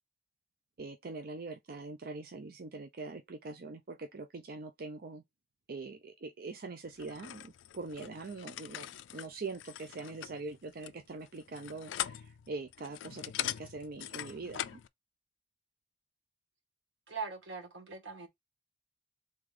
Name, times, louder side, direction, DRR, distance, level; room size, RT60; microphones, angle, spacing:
voice 1, 0.8-5.2 5.7-14.8, right 3 dB, 55° right, 0.5 m, -43 dB
sound 1, 7.0-14.9, left 12 dB, 80° left, 0.3 m, -42 dB
voice 2, 17.1-18.3, right 4 dB, 90° right, 1.5 m, -41 dB
3.6 x 3.3 x 3.6 m
head